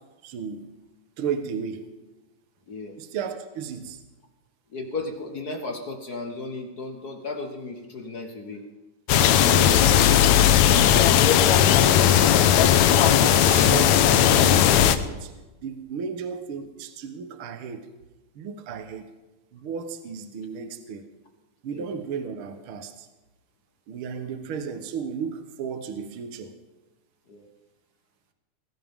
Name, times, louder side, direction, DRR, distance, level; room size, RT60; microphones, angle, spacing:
voice 1, 0.2-0.7 1.2-1.9 3.0-4.0 9.3-11.2 11.5-15.3 15.6-17.9 18.4-19.1 19.5-21.1 21.6-23.1 23.9-26.5, right 6 dB, 55° right, 7 dB, 1.7 m, -34 dB
voice 2, 2.7-3.0 4.7-8.6 11.8-12.1 21.7-21.9 27.3-27.5, left 3 dB, 50° left, 4 dB, 1.2 m, -35 dB
sound 1, 9.1-15.0, left 10 dB, 80° left, 2.0 m, -17 dB
20.0 x 16.5 x 3.7 m, 1.1 s
omnidirectional pair, 3.3 m